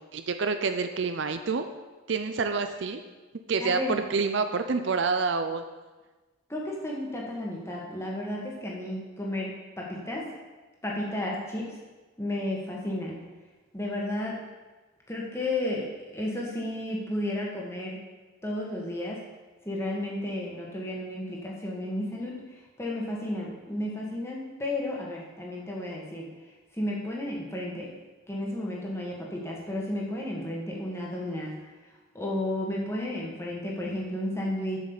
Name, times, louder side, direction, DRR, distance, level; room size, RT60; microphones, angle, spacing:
voice 1, 0.1-1.7 2.1-3.0 3.5-5.6, right 4 dB, 55° right, 8 dB, 0.5 m, -27 dB
voice 2, 3.6-4.0 6.5-10.3 10.8-11.8 12.2-13.2 13.7-14.4 15.1-18.0 18.4-19.2 19.6-26.3 26.7-27.9 28.3-31.5 32.1-34.8, left 1 dB, 10° left, -3 dB, 1.6 m, -33 dB
7.5 x 6.4 x 7.1 m, 1.2 s
head